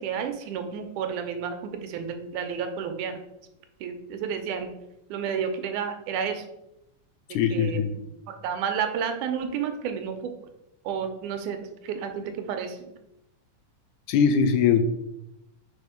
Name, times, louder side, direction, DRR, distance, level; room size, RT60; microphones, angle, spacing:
voice 1, 0.0-3.2 3.8-4.7 5.1-6.4 7.5-8.0 8.3-10.3 10.9-11.6 11.8-12.9, right 7 dB, 85° right, 6 dB, 2.2 m, -31 dB
voice 2, 7.3-7.9 14.1-14.8, left 7 dB, 85° left, 9 dB, 2.1 m, -21 dB
4.9 x 4.5 x 5.0 m, 0.84 s
omnidirectional pair, 3.5 m